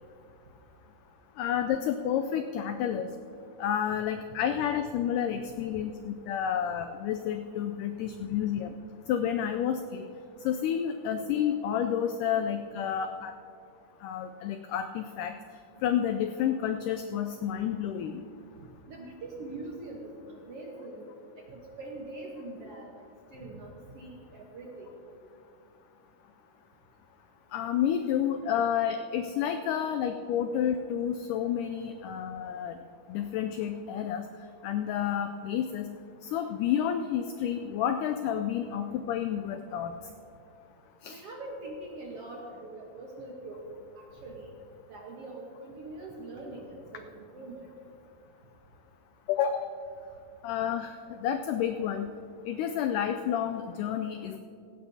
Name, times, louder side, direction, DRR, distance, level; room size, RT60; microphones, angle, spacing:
voice 1, 1.4-3.1 3.6-8.7 9.1-10.1 10.4-13.3 14.0-15.4 15.8-18.2 27.5-32.8 33.1-34.3 34.6-35.9 36.2-39.9 41.0-41.2 49.3-49.7 50.4-52.1 52.5-54.4, left 9 dB, 85° left, 7 dB, 1.8 m, -30 dB
voice 2, 18.9-21.1 21.4-22.9 23.3-24.9 41.1-43.7 44.0-44.5 44.9-47.7, right 2 dB, 70° right, -1 dB, 1.4 m, -43 dB
16.5 x 16.0 x 2.8 m, 2.5 s
omnidirectional pair, 4.2 m